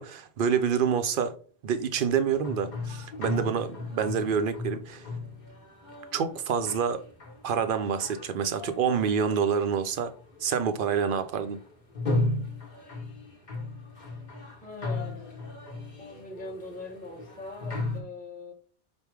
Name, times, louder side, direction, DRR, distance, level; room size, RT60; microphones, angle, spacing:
voice 1, 0.0-1.4 1.6-5.1 6.1-7.0 7.4-10.1 10.4-11.6, right 7 dB, 60° right, 0.7 m, -27 dB
sound 1, 2.0-18.0, left 2 dB, 50° left, 1.2 m, -36 dB
voice 2, 14.6-15.3 16.0-18.5, left 3 dB, 10° left, 0.9 m, -41 dB
5.2 x 2.1 x 4.6 m
omnidirectional pair, 1.1 m